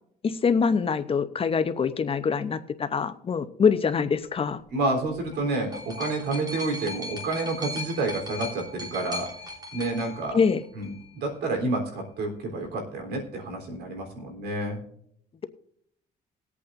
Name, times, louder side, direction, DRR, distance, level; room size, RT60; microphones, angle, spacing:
voice 1, 0.2-4.6 10.3-10.6, left 6 dB, 35° left, 11 dB, 0.7 m, -24 dB
voice 2, 4.7-9.3 9.7-10.4 10.7-14.8, right 2 dB, 75° right, 3 dB, 3.7 m, -29 dB
sound 1, 5.2-11.1 12.0-12.1, left 1 dB, 25° right, 3.1 m, -38 dB
20.5 x 8.5 x 2.6 m, 0.69 s
cardioid pair, 110°, 17 cm